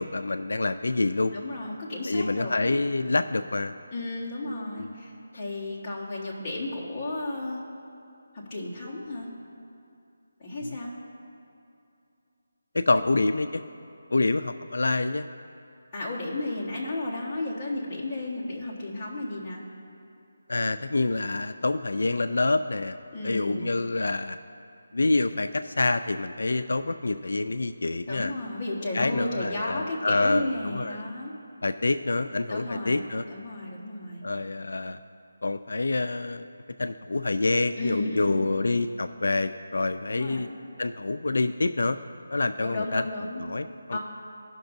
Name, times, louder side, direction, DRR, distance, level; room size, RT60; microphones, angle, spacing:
voice 1, 0.0-1.3 2.1-3.7 4.8-4.9 10.6-10.8 12.7-13.6 14.1-15.3 20.5-23.0 23.2-24.4 24.9-28.3 28.9-31.0 31.6-33.2 34.2-35.0 35.4-36.5 36.8-40.5 40.8-42.0 42.3-43.0 43.4-44.0, left 2 dB, 75° left, 10 dB, 0.3 m, -27 dB
voice 2, 1.3-2.8 3.9-7.6 8.3-9.3 10.4-10.9 15.9-19.6 23.1-23.8 28.1-31.3 32.5-34.2 37.8-38.5 40.1-40.4 42.6-43.4 43.9-44.0, left 2 dB, 20° left, -6 dB, 1.3 m, -33 dB
17.5 x 5.9 x 2.6 m, 2.6 s
figure-of-eight pair, 175°, 0 cm